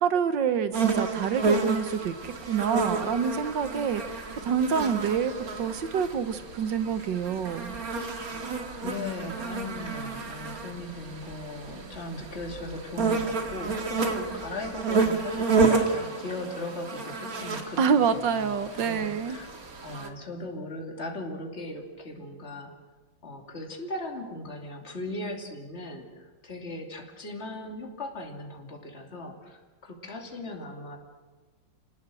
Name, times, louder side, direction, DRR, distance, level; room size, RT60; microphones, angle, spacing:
voice 1, 0.0-7.8 17.8-19.4, right 7 dB, 65° right, 11 dB, 1.7 m, -27 dB
sound 1, 0.7-20.1, right 4 dB, 45° right, 2.2 m, -30 dB
voice 2, 8.8-17.8 18.1-19.5 19.8-22.7 23.2-31.0, left 2 dB, 30° left, 2 dB, 3.0 m, -38 dB
28.0 x 19.0 x 7.7 m, 1.3 s
omnidirectional pair, 2.2 m